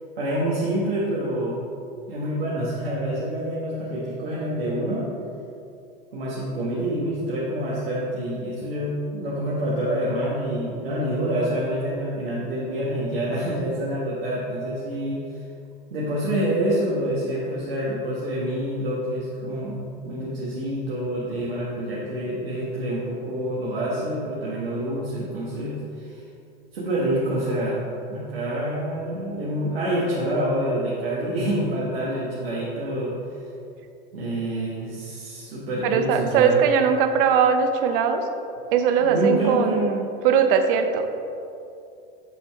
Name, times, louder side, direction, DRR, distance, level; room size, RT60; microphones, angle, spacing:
voice 1, 0.2-1.6 2.1-5.0 6.1-15.4 15.9-26.2 26.7-27.8 28.1-33.1 34.1-36.6 39.0-39.8, right 1 dB, 85° right, -7 dB, 1.4 m, -27 dB
voice 2, 35.8-38.3 38.7-41.1, right 7 dB, 65° right, 7 dB, 0.7 m, -20 dB
8.0 x 4.3 x 4.6 m, 2.6 s
hypercardioid pair, 95°, 29 cm